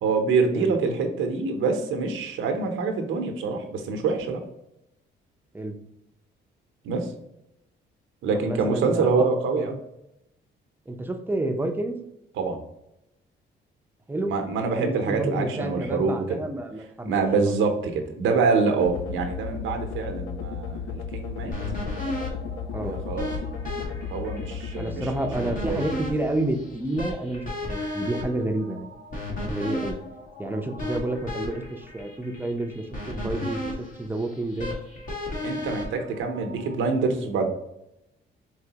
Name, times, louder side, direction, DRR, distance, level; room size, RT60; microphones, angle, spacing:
voice 1, 0.0-4.4 6.8-7.1 8.2-9.8 12.4-12.6 14.3-16.4 17.0-21.5 22.8-23.3 24.0-25.1 25.4-25.8 35.4-37.5, right 4 dB, 80° right, 5 dB, 0.8 m, -25 dB
voice 2, 8.3-9.3 9.5-9.6 10.9-12.0 14.1-14.3 14.8-17.1 17.4-17.5 22.7-23.0 24.8-28.9 29.4-30.0 30.4-34.8, right 1 dB, 10° right, 4 dB, 0.7 m, -29 dB
sound 1, 18.8-27.0, left 6 dB, 85° left, 0.4 m, -35 dB
sound 2, 21.5-36.7, left 1 dB, 45° left, 1.5 m, -35 dB
4.8 x 3.1 x 2.9 m, 0.85 s
cardioid pair, 90°, 20 cm